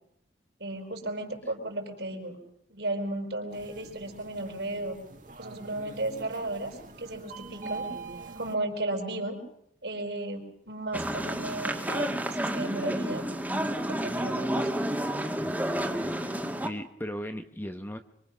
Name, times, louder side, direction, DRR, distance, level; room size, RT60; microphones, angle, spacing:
voice 1, 0.6-2.4 2.7-5.0 5.4-7.9 8.3-9.4 9.8-13.2 13.8-14.7, right 2 dB, 70° right, 3 dB, 4.8 m, -34 dB
sound 1, 3.5-8.6, right 3 dB, 45° right, 2.1 m, -43 dB
sound 2, 10.9-16.7, right 1 dB, 10° right, 2.0 m, -30 dB
voice 2, 15.4-18.0, equal, 10° left, 8 dB, 1.0 m, -39 dB
26.0 x 24.5 x 6.2 m, 0.73 s
head